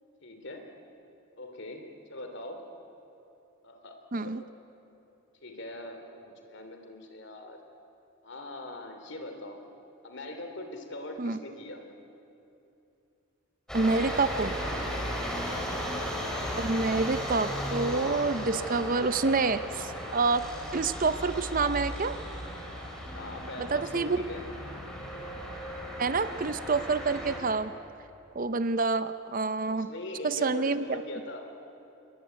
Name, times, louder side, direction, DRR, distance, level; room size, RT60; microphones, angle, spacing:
voice 1, 0.2-0.6 1.4-2.6 3.6-4.5 5.4-7.6 8.2-9.6 10.0-11.8 15.5-15.7 23.1-24.4 29.7-31.4, left 1 dB, 55° left, 5 dB, 3.1 m, -41 dB
voice 2, 4.1-4.4 11.2-11.4 13.7-14.6 16.6-20.5 20.7-22.2 23.6-24.2 26.0-27.7 28.3-29.9 30.2-31.0, right 3 dB, 40° right, 12 dB, 0.6 m, -27 dB
sound 1, 13.7-27.4, equal, 5° left, 4.2 m, -36 dB
26.5 x 22.0 x 9.4 m, 2.8 s
head